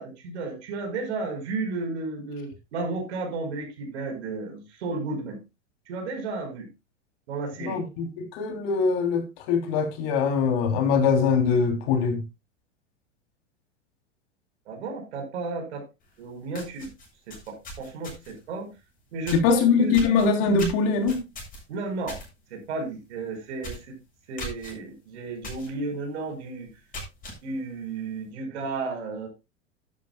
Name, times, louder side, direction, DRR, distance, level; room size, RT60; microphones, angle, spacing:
voice 1, 0.0-5.4 5.9-6.7 7.3-7.8 14.7-15.8 16.2-16.9 17.3-18.7 19.1-20.0 21.7-22.2 22.5-24.0 24.3-26.7 27.4-29.3, right 3 dB, 65° right, 5.4 m, -33 dB
voice 2, 7.6-12.2 19.3-21.2, left 5 dB, 50° left, 3.4 m, -22 dB
sound 1, 16.1-16.2 16.5-18.4 19.3-19.6 19.9-22.3 22.6-22.9 23.2-23.3 23.6-23.9 24.4-24.7 25.4-25.7 26.1-26.2 26.7-27.4, left 1 dB, 25° left, 7.3 m, -38 dB
12.5 x 11.5 x 2.3 m
hypercardioid pair, 95°, 36 cm